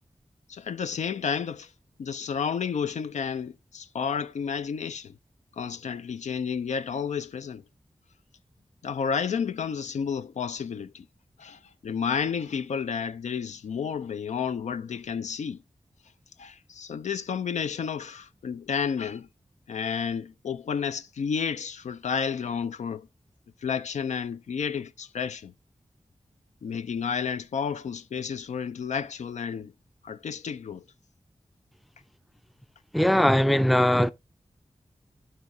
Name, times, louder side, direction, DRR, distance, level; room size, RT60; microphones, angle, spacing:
voice 1, 0.5-1.7 2.0-5.1 5.6-7.6 8.8-11.0 11.4-15.6 16.4-19.3 19.7-23.1 23.6-25.5 26.6-29.7 30.0-30.8, left 6 dB, 80° left, 0.4 m, -31 dB
voice 2, 32.9-34.1, equal, ahead, 0.4 m, -20 dB
12.0 x 5.5 x 2.6 m
cardioid pair, 40°, 12 cm